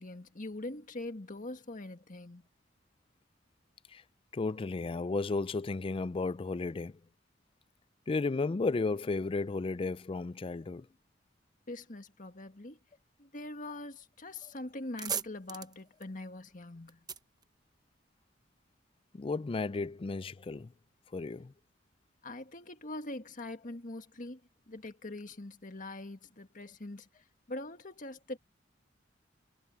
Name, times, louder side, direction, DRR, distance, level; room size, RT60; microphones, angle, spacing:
voice 1, 0.0-2.5 11.7-12.8 13.2-17.0 22.2-24.4 24.7-28.4, left 2 dB, 45° left, 1.7 m, -43 dB
voice 2, 4.3-7.0 8.1-10.9 19.1-20.7 21.1-21.5, left 3 dB, 30° left, 0.4 m, -33 dB
sound 1, 14.2-14.4 14.7-18.3, right 6 dB, 20° right, 0.9 m, -41 dB
head